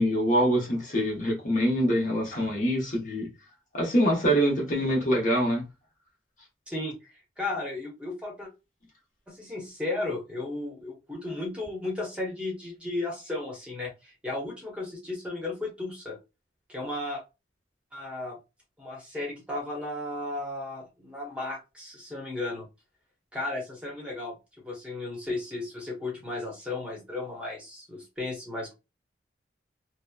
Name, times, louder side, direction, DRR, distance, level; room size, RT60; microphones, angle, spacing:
voice 1, 0.0-3.3 3.7-5.6, equal, 45° left, 1.0 m, -24 dB
voice 2, 6.7-7.1 7.4-8.5 9.3-16.2 16.7-17.2 17.9-18.4 18.8-22.6 23.3-24.3 24.6-28.7, left 2 dB, 5° right, 0.9 m, -34 dB
2.9 x 2.0 x 2.3 m
head